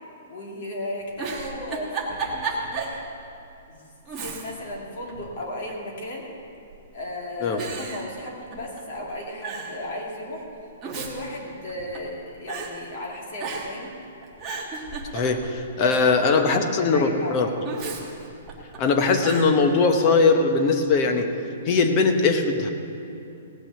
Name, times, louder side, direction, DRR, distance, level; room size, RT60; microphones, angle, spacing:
voice 1, 0.3-3.0 3.7-3.8 4.2-6.3 6.9-10.5 10.8-13.9 15.8-17.6, left 1 dB, 40° left, -1 dB, 2.3 m, -35 dB
Giggle, 1.0-3.0 3.4-3.5 4.1-4.8 5.1-5.9 6.7-7.1 7.6-8.8 9.1-9.2 9.4-9.8 10.6-12.1 12.5-12.7 13.4-13.9 14.2-15.6 17.6-18.8 19.2-19.5, right 4 dB, 10° right, 1.3 m, -33 dB
voice 2, 15.1-17.5 18.8-21.3 21.7-22.7, left 4 dB, 25° left, 5 dB, 0.8 m, -20 dB
17.5 x 6.1 x 7.9 m, 2.7 s
hypercardioid pair, 180°, 0 cm